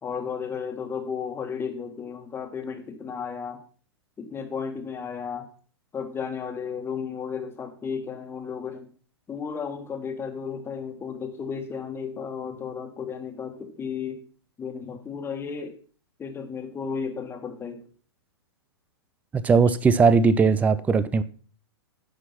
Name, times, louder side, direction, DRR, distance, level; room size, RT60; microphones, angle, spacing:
voice 1, 0.0-3.6 4.2-5.5 5.9-8.9 9.3-14.2 14.6-15.8 16.2-17.8, left 6 dB, 15° left, 1.6 m, -33 dB
voice 2, 19.3-21.2, right 5 dB, 10° right, 0.5 m, -19 dB
10.0 x 6.1 x 5.7 m
figure-of-eight pair, 110°, 14 cm